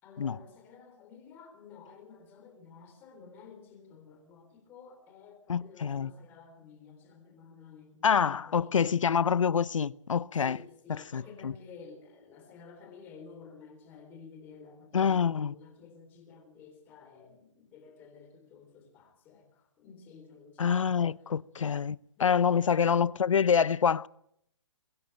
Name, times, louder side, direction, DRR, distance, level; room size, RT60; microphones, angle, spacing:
voice 1, 0.0-8.8 10.4-21.0 21.6-21.7 22.2-22.4, left 5 dB, 10° left, 3.5 m, -52 dB
voice 2, 5.5-6.1 8.0-10.6 10.9-11.5 14.9-15.5 20.6-24.1, left 7 dB, 85° left, 0.9 m, -26 dB
23.0 x 17.0 x 7.7 m
hypercardioid pair, 175°, 16 cm